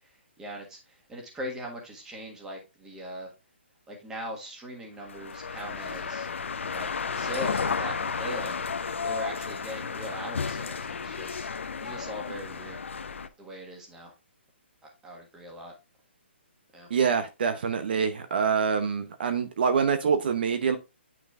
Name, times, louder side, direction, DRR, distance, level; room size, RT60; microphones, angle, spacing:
voice 1, 0.0-3.3 3.9-6.3 6.7-8.5 9.0-11.5 11.8-12.8 13.4-14.1 14.8-15.7 16.7-16.9, equal, 10° right, 1.6 m, -40 dB
sound 1, 5.0-13.3, left 5 dB, 85° left, 0.7 m, -33 dB
voice 2, 16.9-20.8, right 6 dB, 50° right, 0.8 m, -25 dB
8.9 x 6.0 x 2.4 m
hypercardioid pair, 160°, 7 cm